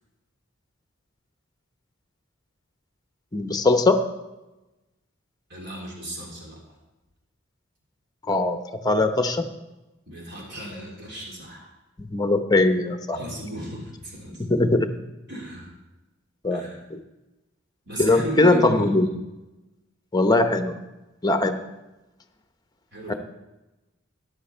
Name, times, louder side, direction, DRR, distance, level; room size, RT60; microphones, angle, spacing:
voice 1, 3.3-4.0 8.3-8.6 8.8-9.4 12.0-13.2 14.5-14.9 16.4-16.6 16.9-17.0 18.0-19.1 20.1-20.8 21.2-21.6 23.1-23.2, left 2 dB, 20° left, 7 dB, 0.7 m, -20 dB
voice 2, 5.5-6.8 10.1-11.7 13.1-14.7 15.3-15.7 16.5-16.8 17.9-19.1 22.9-23.2, equal, 55° right, -2 dB, 3.2 m, -35 dB
14.0 x 10.5 x 4.4 m, 1.1 s
head